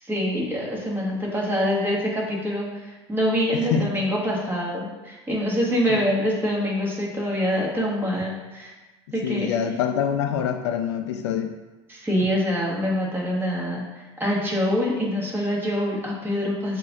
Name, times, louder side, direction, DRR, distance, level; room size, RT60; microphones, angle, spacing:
voice 1, 0.0-8.7 9.1-9.5 11.9-16.8, equal, 15° right, -4 dB, 1.5 m, -25 dB
voice 2, 3.5-3.9 5.9-6.0 9.2-11.5, left 8 dB, 75° left, 7 dB, 0.4 m, -25 dB
7.3 x 2.5 x 2.5 m, 1.2 s
hypercardioid pair, 80°, 14 cm